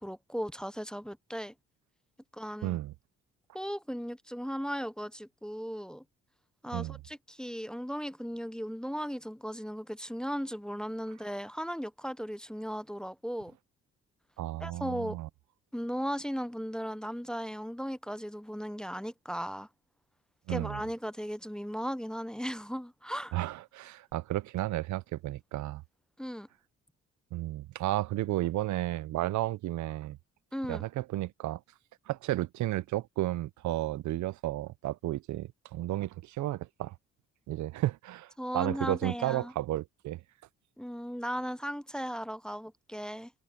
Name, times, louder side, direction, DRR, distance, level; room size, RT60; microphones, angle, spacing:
voice 1, 0.0-1.5 2.3-2.8 3.5-6.0 6.6-13.5 14.6-15.2 15.7-19.7 20.5-23.4 26.2-26.5 30.5-30.8 38.4-39.5 40.8-43.3, equal, ahead, 0.7 m, -36 dB
voice 2, 2.6-2.9 6.7-7.0 14.4-15.3 20.5-20.8 23.3-25.8 27.3-30.2 30.7-31.6 32.1-36.9 37.5-40.2, right 15 dB, 70° right, 0.6 m, -33 dB
cardioid pair, 90°, 30 cm